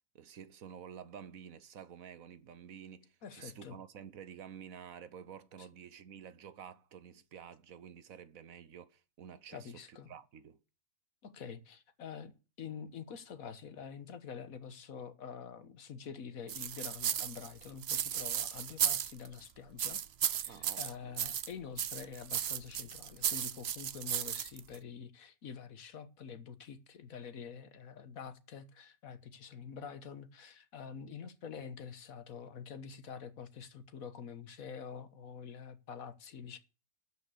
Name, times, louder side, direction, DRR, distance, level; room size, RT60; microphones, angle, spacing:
voice 1, 0.1-10.6 20.5-21.2, right 8 dB, 80° right, 1.4 m, -50 dB
voice 2, 3.2-3.8 5.6-5.7 9.5-10.1 11.2-20.0 20.3-36.6, left 6 dB, 80° left, 1.7 m, -47 dB
sound 1, 16.5-19.4 19.8-21.5 21.8-24.8, right 9 dB, 55° right, 0.9 m, -35 dB
12.5 x 5.3 x 8.3 m
omnidirectional pair, 1.4 m